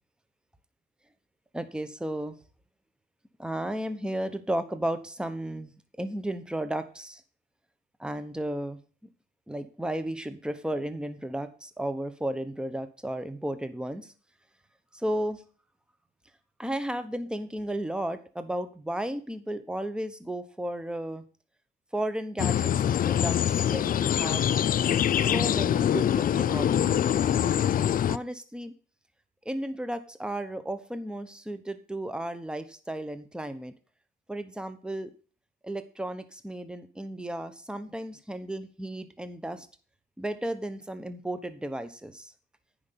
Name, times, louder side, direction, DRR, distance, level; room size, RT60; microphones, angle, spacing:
voice 1, 1.5-2.4 3.4-5.7 6.0-7.2 8.0-8.8 9.5-14.1 14.9-15.4 16.6-21.2 21.9-24.7 25.2-27.4 28.1-28.7 29.4-33.7 34.3-35.1 35.6-39.7 40.2-42.3, right 1 dB, 5° right, 11 dB, 1.0 m, -34 dB
sound 1, 22.4-28.2, left 10 dB, 45° left, 0.4 m, -24 dB
9.6 x 5.2 x 6.9 m, 0.39 s
cardioid pair, 90°, 20 cm